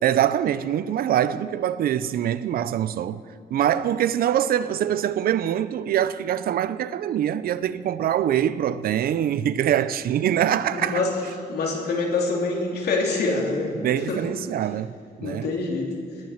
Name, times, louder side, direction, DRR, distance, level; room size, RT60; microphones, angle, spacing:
voice 1, 0.0-3.2 3.5-11.0 13.8-15.5, right 10 dB, 70° right, 0.5 m, -24 dB
voice 2, 10.7-11.1 11.5-13.7 14.1-14.2 15.2-15.9, left 3 dB, 85° left, 3.1 m, -25 dB
19.0 x 7.2 x 7.9 m
wide cardioid pair, 160°, 16 cm